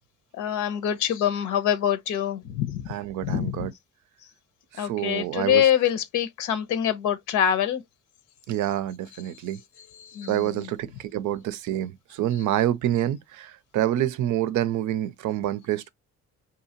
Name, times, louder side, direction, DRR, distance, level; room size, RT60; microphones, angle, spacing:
voice 1, 0.4-2.9 3.2-3.7 4.8-7.8 10.0-10.7, left 10 dB, 90° left, 0.8 m, -25 dB
voice 2, 2.9-3.7 4.7-5.7 8.5-9.6 10.3-15.9, right 12 dB, 80° right, 0.5 m, -27 dB
3.8 x 2.8 x 2.8 m
cardioid pair, 90°, 30 cm